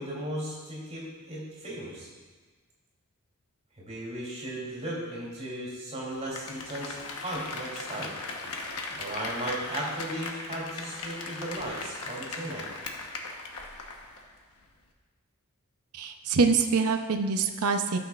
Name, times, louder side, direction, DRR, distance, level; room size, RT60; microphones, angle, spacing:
voice 1, 0.0-2.1 3.8-8.1 8.9-12.7, right 1 dB, 30° right, -4 dB, 3.0 m, -36 dB
Applause, 6.1-14.3 14.6-14.7, left 3 dB, 85° left, 1.1 m, -38 dB
voice 2, 16.0-18.0, right 4 dB, 90° right, 6 dB, 0.6 m, -25 dB
17.5 x 6.8 x 2.4 m, 1.4 s
head